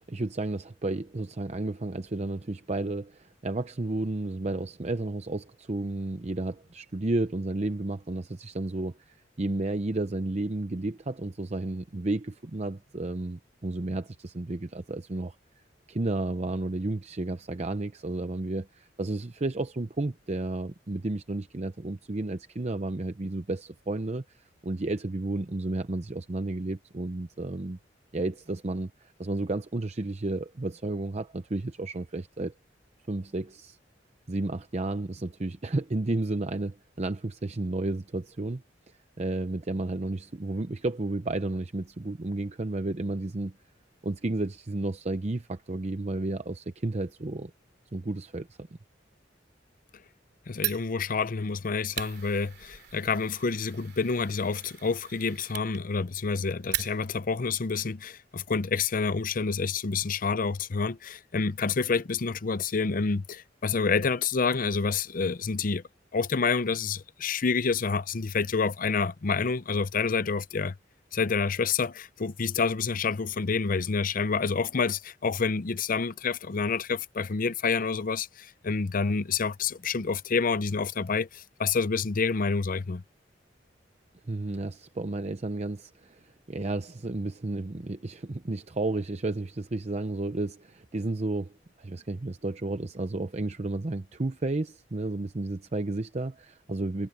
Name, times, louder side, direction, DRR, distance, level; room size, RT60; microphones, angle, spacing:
voice 1, 0.0-15.4 15.9-27.8 28.1-32.5 33.1-33.8 34.3-38.6 39.2-43.5 44.0-47.5 47.9-48.7 84.3-97.1, right 2 dB, 35° right, 0.7 m, -32 dB
voice 2, 50.5-65.8 66.1-70.7 71.1-83.0, left 5 dB, 45° left, 0.6 m, -28 dB
Fire, 50.5-57.3, right 13 dB, 60° right, 3.2 m, -39 dB
head